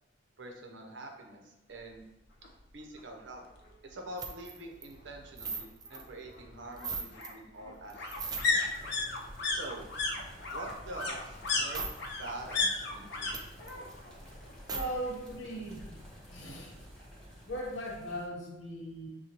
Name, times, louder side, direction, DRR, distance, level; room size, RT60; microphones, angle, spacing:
voice 1, 0.4-2.0 2.7-3.5 3.8-8.1 8.5-8.7 9.5-9.9 10.5-11.8 12.2-13.4, right 1 dB, 65° right, 2 dB, 0.7 m, -45 dB
sound 1, 2.4-2.5 2.9-3.0 3.3-4.3 5.5-13.3 13.6-14.2 14.4-15.5 15.8-15.9, left 3 dB, 60° left, 0.6 m, -34 dB
sound 2, 4.2-7.3 7.7-8.8 9.2-11.9 12.2-12.3 12.6-14.8 15.3-15.4 15.6-17.5, right 4 dB, 20° right, 0.4 m, -43 dB
sound 3, 8.1-18.3, equal, 5° left, 1.0 m, -52 dB
voice 2, 14.7-15.9 16.3-16.8 17.4-19.1, right 1 dB, 75° left, -1 dB, 1.0 m, -38 dB
6.4 x 2.2 x 2.9 m, 0.95 s
head